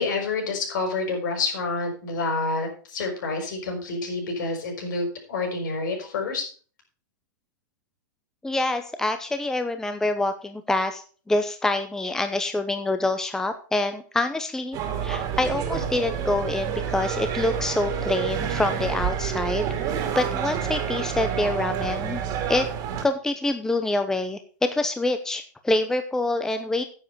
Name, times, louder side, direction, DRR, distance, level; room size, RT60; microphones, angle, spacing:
voice 1, 0.0-6.4, left 3 dB, 75° left, 3 dB, 5.9 m, -28 dB
voice 2, 8.4-19.7 20.1-22.2 22.5-22.7 23.0-26.8, left 2 dB, 5° left, 8 dB, 0.8 m, -26 dB
sound 1, 14.7-23.0, right 8 dB, 35° right, 2.3 m, -28 dB
9.9 x 7.7 x 5.6 m, 0.40 s
hypercardioid pair, 140°, 10 cm